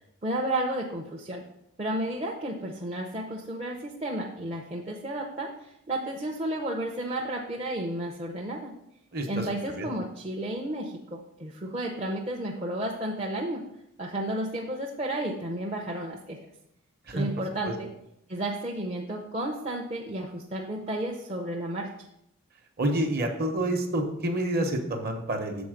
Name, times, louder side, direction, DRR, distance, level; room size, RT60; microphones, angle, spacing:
voice 1, 0.2-1.4 1.8-8.8 9.3-13.6 14.0-16.4 17.1-17.9 18.3-21.9, right 1 dB, 30° right, -1 dB, 0.6 m, -32 dB
voice 2, 9.1-9.5 9.8-9.9 17.1-17.3 17.7-17.8 22.8-25.7, right 1 dB, 45° right, 4 dB, 1.0 m, -28 dB
7.0 x 4.7 x 5.0 m, 0.80 s
head